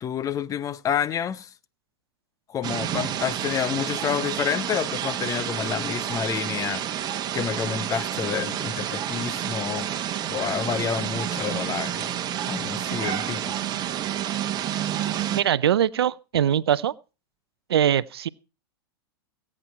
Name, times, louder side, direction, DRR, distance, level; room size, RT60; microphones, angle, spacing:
voice 1, 0.0-1.5 2.5-9.9 10.3-12.1 12.5-13.6, left 8 dB, 25° left, 0.7 m, -29 dB
sound 1, 2.6-15.4, right 10 dB, 30° right, 1.3 m, -29 dB
voice 2, 15.3-16.9 17.7-18.3, right 10 dB, 80° right, 0.5 m, -22 dB
16.5 x 8.7 x 4.5 m
hypercardioid pair, 105°, 13 cm